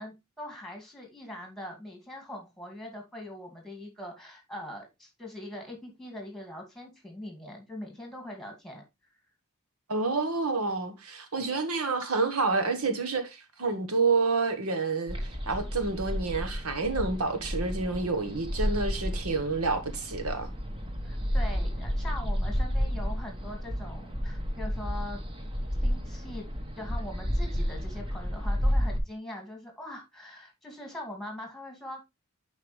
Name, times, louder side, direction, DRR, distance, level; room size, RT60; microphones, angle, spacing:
voice 1, 0.0-8.8 21.0-25.2 25.8-26.5 26.8-32.0, left 1 dB, ahead, 2.4 m, -42 dB
voice 2, 9.9-20.5, right 4 dB, 75° right, 1.3 m, -29 dB
sound 1, 15.1-29.0, equal, 25° right, 1.1 m, -31 dB
10.5 x 4.8 x 3.2 m
head